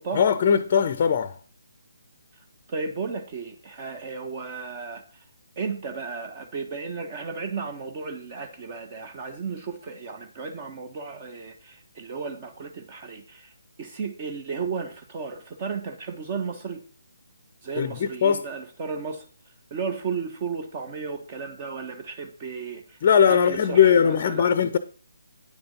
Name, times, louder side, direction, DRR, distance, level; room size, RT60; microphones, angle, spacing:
voice 1, 0.1-1.4 17.8-18.4 23.0-24.8, left 7 dB, 30° left, 0.7 m, -20 dB
voice 2, 2.7-5.2 5.6-13.5 13.8-16.8 17.6-19.3 19.7-23.0 23.2-24.5, right 5 dB, 30° right, 1.2 m, -34 dB
9.7 x 6.8 x 5.3 m
figure-of-eight pair, 140°, 0 cm